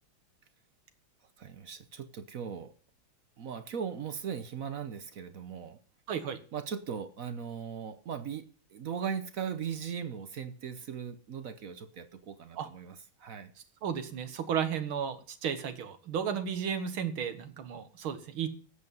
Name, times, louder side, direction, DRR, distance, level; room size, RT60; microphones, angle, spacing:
voice 1, 1.4-2.7 3.4-5.8 6.5-13.5, right 7 dB, 60° right, 1.0 m, -38 dB
voice 2, 6.1-6.4 12.6-12.7 13.8-18.5, right 8 dB, 90° right, 2.2 m, -33 dB
13.0 x 8.5 x 5.5 m
omnidirectional pair, 2.2 m